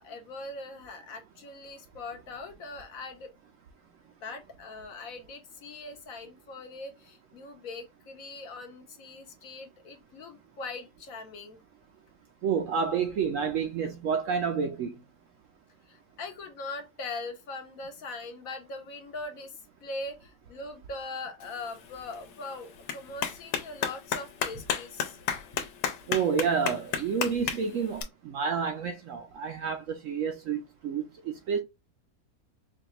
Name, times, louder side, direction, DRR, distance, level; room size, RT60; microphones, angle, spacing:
voice 1, 0.0-3.3 4.2-11.6 15.9-19.6 19.8-25.2, left 3 dB, 65° left, 1.0 m, -41 dB
voice 2, 12.4-15.0 26.1-31.6, right 6 dB, 65° right, 0.8 m, -29 dB
Clapping, 21.4-28.0, left 8 dB, 85° left, 1.3 m, -34 dB
4.9 x 2.3 x 2.8 m
omnidirectional pair, 1.8 m